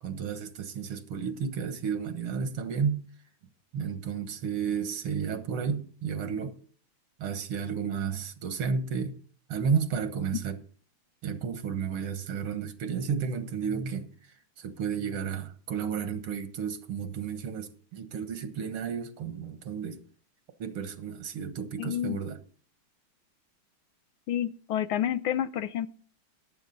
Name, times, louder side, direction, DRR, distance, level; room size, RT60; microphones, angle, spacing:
voice 1, 0.0-3.0 3.7-6.6 7.2-9.1 9.5-10.6 11.2-14.1 14.6-20.0 20.6-22.4, right 6 dB, 85° right, 2.2 m, -32 dB
voice 2, 21.8-22.2 24.3-25.9, left 10 dB, 75° left, 1.6 m, -29 dB
14.5 x 11.0 x 4.0 m
omnidirectional pair, 2.4 m